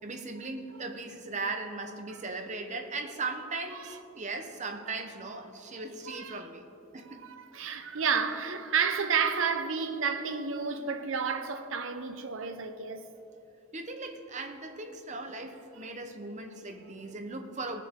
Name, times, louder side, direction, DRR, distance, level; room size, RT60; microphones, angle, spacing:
voice 1, 0.0-6.7 6.9-7.2 13.7-17.8, right 3 dB, 35° right, 0.8 m, -38 dB
voice 2, 6.1-6.5 7.2-13.0 15.7-15.8, right 6 dB, 65° right, 0.7 m, -31 dB
19.0 x 6.8 x 3.7 m
head